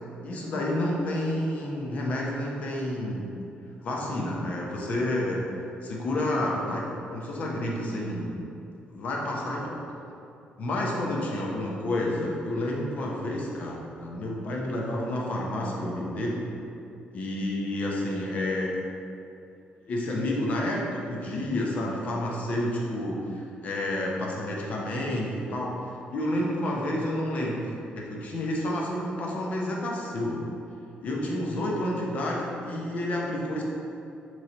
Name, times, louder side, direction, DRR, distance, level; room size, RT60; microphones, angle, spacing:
voice 1, 0.2-3.2 3.8-5.4 5.8-6.8 7.1-8.5 8.9-9.8 10.6-16.4 17.1-18.8 19.9-25.7 26.1-30.5 31.0-33.6, left 1 dB, 45° left, -2 dB, 0.7 m, -30 dB
3.9 x 3.1 x 4.2 m, 2.7 s
cardioid pair, 165°, 3 cm